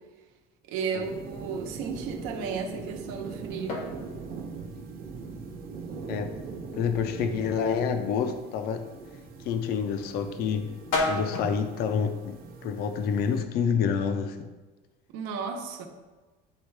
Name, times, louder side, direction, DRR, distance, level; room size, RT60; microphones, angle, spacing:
voice 1, 0.7-3.9 15.1-15.9, right 5 dB, 90° right, 3 dB, 1.0 m, -34 dB
sound 1, 1.0-13.4, right 4 dB, 45° right, 0.8 m, -41 dB
sound 2, 2.3-13.0, left 2 dB, 90° left, 1.7 m, -38 dB
voice 2, 6.7-8.9 9.4-10.7 11.1-14.5, left 6 dB, 50° left, 8 dB, 0.5 m, -28 dB
10.0 x 3.5 x 3.3 m, 1.3 s
cardioid pair, 165°, 21 cm